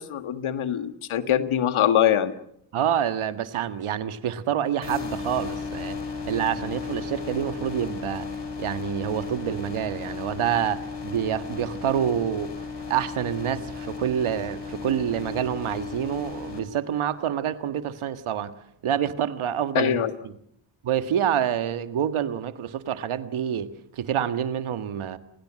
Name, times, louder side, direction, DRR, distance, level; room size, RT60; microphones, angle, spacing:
voice 1, 0.0-2.3 19.7-20.1, left 10 dB, 80° left, 10 dB, 1.9 m, -23 dB
voice 2, 2.7-6.0 6.3-8.3 8.6-12.5 12.9-18.5 18.8-20.3 20.8-25.2, right 9 dB, 85° right, 11 dB, 1.7 m, -27 dB
sound 1, 4.8-16.6, left 5 dB, 60° left, 6.2 m, -35 dB
30.0 x 21.0 x 7.6 m, 0.73 s
supercardioid pair, 45°, 48 cm